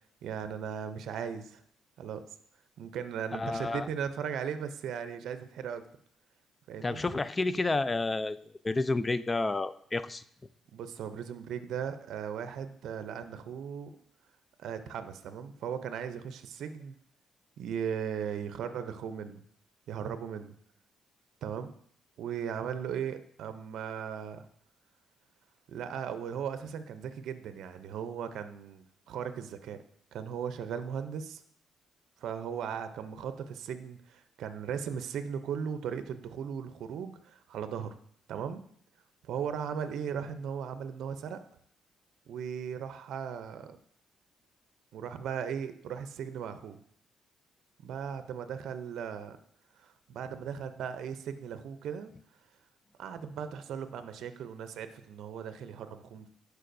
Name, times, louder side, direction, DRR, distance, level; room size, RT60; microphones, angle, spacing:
voice 1, 0.2-1.6 2.0-2.2 2.8-5.8 6.7-7.0 10.7-13.9 14.6-16.9 17.6-19.4 19.9-20.5 21.4-21.7 22.2-24.4 25.7-29.8 30.1-31.4 32.2-37.9 38.3-38.6 39.2-41.4 42.3-43.8 44.9-46.8 47.8-49.4 49.8-52.1 53.0-56.3, right 7 dB, 75° right, 10 dB, 0.5 m, -37 dB
voice 2, 3.3-3.9 6.8-8.4 8.6-10.2, left 3 dB, 25° left, 15 dB, 0.4 m, -30 dB
11.0 x 4.7 x 2.6 m, 0.63 s
cardioid pair, 90°, 0 cm